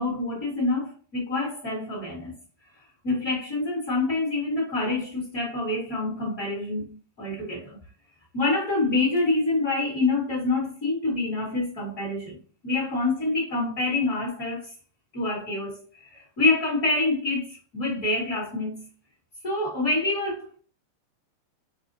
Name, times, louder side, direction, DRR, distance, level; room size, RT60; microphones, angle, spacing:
voice 1, 0.0-2.3 3.0-7.8 8.3-12.4 12.6-14.7 15.1-18.8 19.4-20.5, left 2 dB, 40° left, 1.2 m, -26 dB
6.4 x 2.4 x 2.6 m
omnidirectional pair, 4.2 m